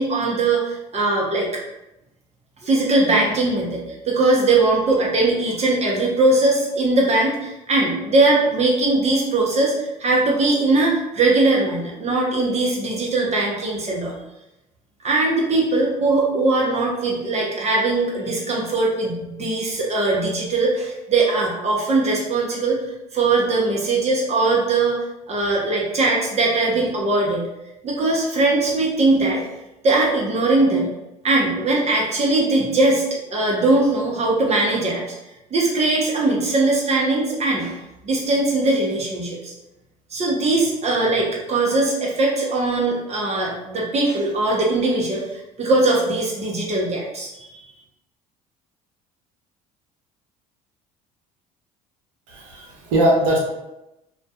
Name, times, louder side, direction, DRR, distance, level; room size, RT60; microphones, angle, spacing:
voice 1, 0.0-1.5 2.6-14.1 15.0-22.8 23.1-25.0 25.3-27.5 27.8-29.4 29.8-30.9 31.2-33.0 33.3-35.0 35.5-37.7 38.0-39.5 40.1-45.2 45.6-47.5, right 2 dB, 35° right, -2 dB, 0.7 m, -20 dB
voice 2, 52.3-53.4, right 1 dB, 70° right, -2 dB, 0.8 m, -20 dB
2.2 x 2.2 x 2.7 m, 0.93 s
hypercardioid pair, 65°, 19 cm